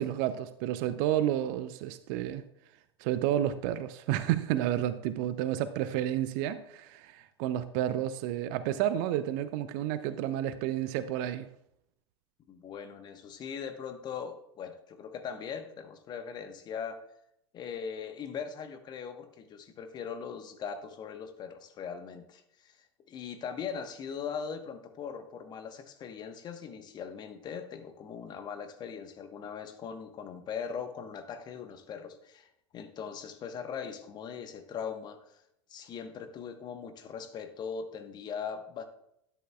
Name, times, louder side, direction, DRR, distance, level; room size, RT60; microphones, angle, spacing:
voice 1, 0.0-2.4 3.0-11.5, right 12 dB, 45° right, 14 dB, 0.6 m, -30 dB
voice 2, 12.5-17.0 17.5-35.4 35.7-38.8, left 6 dB, 30° left, 7 dB, 1.2 m, -40 dB
12.5 x 10.5 x 2.4 m, 0.77 s
figure-of-eight pair, 80°, 14 cm